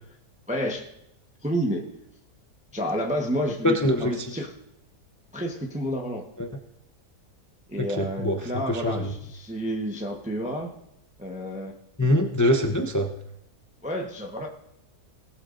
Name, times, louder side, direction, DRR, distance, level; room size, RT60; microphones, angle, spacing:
voice 1, 0.5-0.9 1.4-1.8 2.7-4.5 5.3-6.3 7.7-10.7 11.2-11.7 13.8-14.5, equal, 5° right, 1 dB, 0.9 m, -30 dB
voice 2, 3.6-4.3 6.4-6.5 7.8-9.1 12.0-13.1, left 1 dB, 25° left, 4 dB, 0.4 m, -24 dB
19.5 x 12.5 x 2.6 m, 0.81 s
omnidirectional pair, 1.7 m